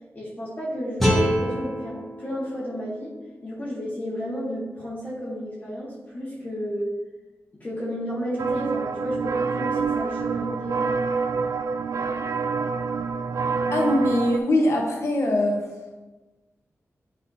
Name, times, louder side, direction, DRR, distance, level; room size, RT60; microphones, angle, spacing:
voice 1, 0.1-3.1 3.4-6.9 7.6-11.0, equal, 30° left, -8 dB, 1.8 m, -32 dB
sound 1, 1.0-4.1, equal, 5° left, 1.5 m, -27 dB
sound 2, 8.4-14.4, right 5 dB, 70° right, 0.4 m, -27 dB
voice 2, 13.7-15.6, left 1 dB, 65° left, -1 dB, 1.4 m, -22 dB
10.0 x 4.1 x 2.9 m, 1.2 s
wide cardioid pair, 105°, 5 cm